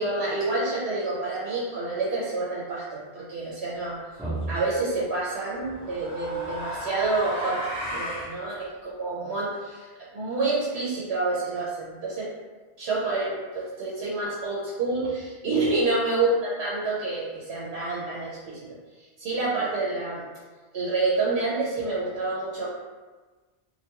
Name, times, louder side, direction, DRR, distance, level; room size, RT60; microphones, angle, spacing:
voice 1, 0.0-4.0 4.5-7.6 7.9-8.7 9.0-12.3 12.8-16.3 16.6-18.6 19.2-20.2 20.7-22.7, right 3 dB, 90° right, -7 dB, 0.8 m, -28 dB
sound 1, 4.2-4.6 5.6-8.3, equal, 5° right, 0.6 m, -33 dB
2.3 x 2.2 x 2.8 m, 1.3 s
omnidirectional pair, 1.0 m